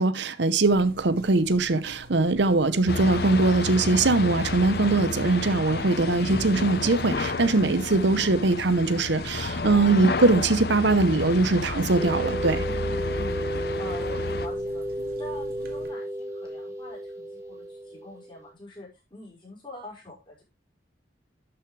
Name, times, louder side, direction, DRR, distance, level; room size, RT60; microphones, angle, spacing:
voice 1, 0.0-12.6, right 3 dB, 70° right, 0.8 m, -22 dB
sound 1, 0.6-15.9, equal, 50° right, 2.3 m, -47 dB
sound 2, 2.9-14.5, left 3 dB, 55° left, 0.8 m, -31 dB
sound 3, 12.0-18.5, right 1 dB, 15° right, 1.8 m, -32 dB
voice 2, 12.6-20.4, left 2 dB, 25° left, 5.5 m, -44 dB
12.0 x 7.0 x 3.2 m
head